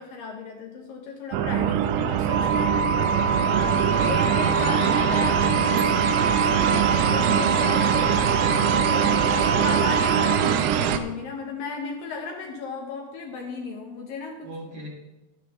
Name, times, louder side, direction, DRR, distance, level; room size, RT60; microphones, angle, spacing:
voice 1, 0.0-3.4 4.0-6.1 6.5-14.5, left 4 dB, 70° left, 1 dB, 2.4 m, -35 dB
sound 1, 1.3-11.0, right 9 dB, 85° right, 2.8 m, -23 dB
sound 2, 2.3-10.4, right 2 dB, 70° right, 2.2 m, -27 dB
voice 2, 3.4-5.5 14.4-14.9, right 1 dB, 50° right, -4 dB, 2.8 m, -38 dB
13.0 x 10.5 x 3.0 m, 1.0 s
omnidirectional pair, 4.8 m